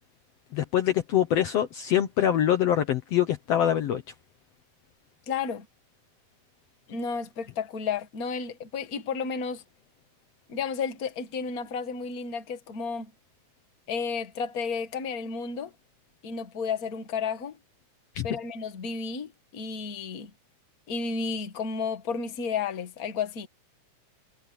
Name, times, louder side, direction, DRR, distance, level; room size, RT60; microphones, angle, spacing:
voice 1, 0.5-4.0 18.2-18.3, left 10 dB, 90° left, 1.4 m, -24 dB
voice 2, 5.3-5.6 6.9-9.6 10.5-13.1 13.9-15.7 16.2-17.6 18.2-20.3 20.9-23.5, left 5 dB, 45° left, 1.1 m, -32 dB
omnidirectional pair, 4.5 m